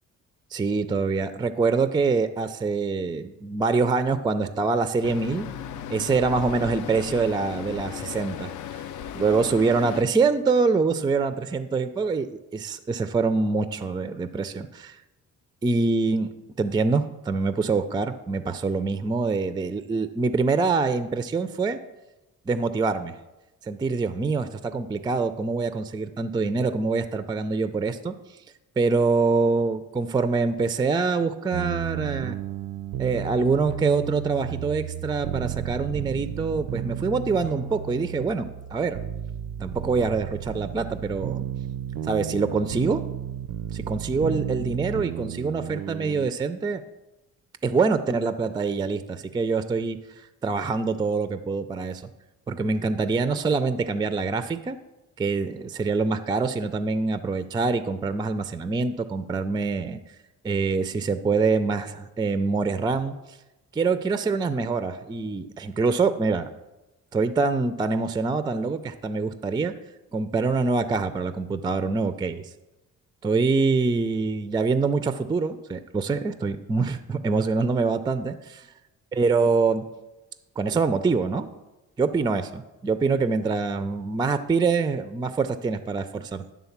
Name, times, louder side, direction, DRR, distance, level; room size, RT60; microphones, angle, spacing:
voice 1, 0.5-5.5 5.9-8.5 9.1-12.3 12.5-15.0 15.6-16.3 16.6-21.8 22.5-23.1 23.6-28.1 28.8-32.4 33.0-39.0 39.6-41.4 42.0-43.0 43.7-46.8 47.6-52.0 52.5-54.8 55.2-60.0 60.4-63.4 63.7-66.5 67.1-69.7 70.1-72.4 73.2-78.4 79.2-79.8 80.6-81.5 82.0-86.5, right 4 dB, 15° right, 11 dB, 0.3 m, -25 dB
Traffic noise roadway noise, 5.0-10.0, left 10 dB, 65° left, 0.5 m, -36 dB
sound 1, 31.5-46.3, right 11 dB, 85° right, 0.5 m, -33 dB
10.5 x 3.7 x 7.1 m, 1.0 s
cardioid pair, 120°, 32 cm